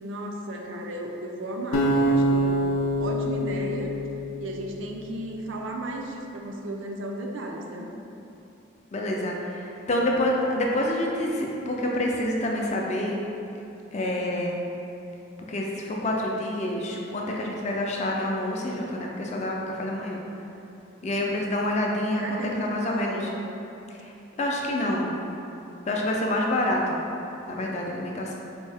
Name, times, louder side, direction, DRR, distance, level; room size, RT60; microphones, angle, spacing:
voice 1, 0.0-2.7 3.0-3.9 4.4-7.9 22.2-23.3, right 1 dB, 65° right, 1 dB, 0.4 m, -34 dB
sound 1, 1.7-4.9, right 1 dB, 90° left, 0.5 m, -25 dB
voice 2, 8.9-13.2 13.9-14.6 15.5-20.2 21.0-23.3 23.9-24.1 24.4-25.1 25.9-27.0 27.5-28.4, left 1 dB, 35° left, -1 dB, 0.4 m, -27 dB
4.4 x 2.7 x 3.3 m, 2.9 s
head